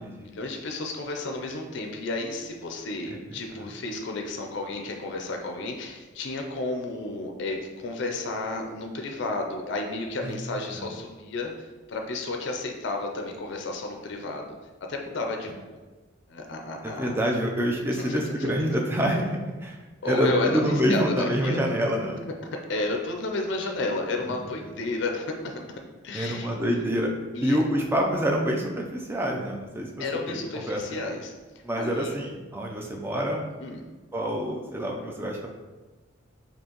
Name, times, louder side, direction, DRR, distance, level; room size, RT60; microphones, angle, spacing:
voice 1, 0.0-14.6 14.9-15.8 16.3-17.2 17.9-18.5 20.0-21.7 22.7-25.5 26.0-26.5 27.3-27.6 30.0-31.3 31.7-32.2 33.6-33.8, left 2 dB, 60° left, 2 dB, 0.5 m, -32 dB
voice 2, 3.1-3.7 10.2-10.3 10.7-10.9 16.8-19.8 20.0-22.2 24.3-24.4 26.1-27.1 27.4-31.0 31.6-33.5 34.1-35.5, equal, 10° right, 0 dB, 0.4 m, -27 dB
4.4 x 2.8 x 2.9 m, 1.2 s
head